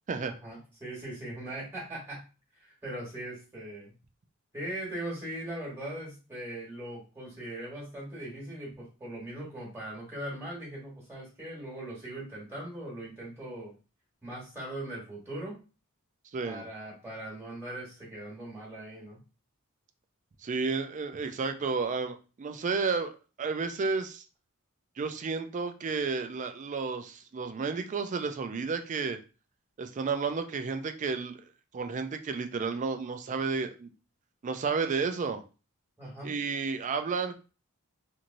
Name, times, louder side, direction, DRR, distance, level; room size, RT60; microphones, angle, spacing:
voice 1, 0.2-2.2 2.6-3.9 4.5-13.7 14.2-15.6 16.4-19.2 36.0-36.4, right 1 dB, 10° right, -4 dB, 1.3 m, -40 dB
voice 2, 16.3-16.6 20.4-23.1 23.4-24.2 25.0-29.2 29.8-31.4 31.7-33.9 34.4-35.4 36.2-37.4, right 4 dB, 35° right, 7 dB, 0.3 m, -31 dB
2.9 x 2.6 x 2.6 m, 0.33 s
head